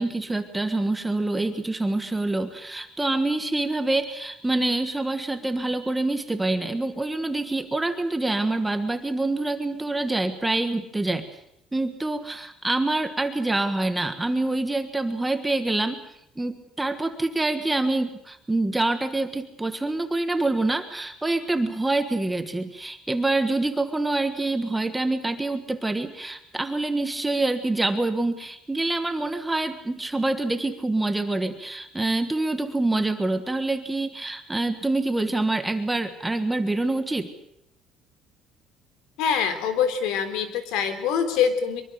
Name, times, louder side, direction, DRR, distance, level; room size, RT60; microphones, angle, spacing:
voice 1, 0.0-11.2 11.7-16.0 16.4-37.3, right 2 dB, 10° right, 8 dB, 1.5 m, -26 dB
voice 2, 39.2-41.8, left 7 dB, 75° left, 9 dB, 3.6 m, -24 dB
24.5 x 23.5 x 6.8 m, 0.75 s
cardioid pair, 170°, 0 cm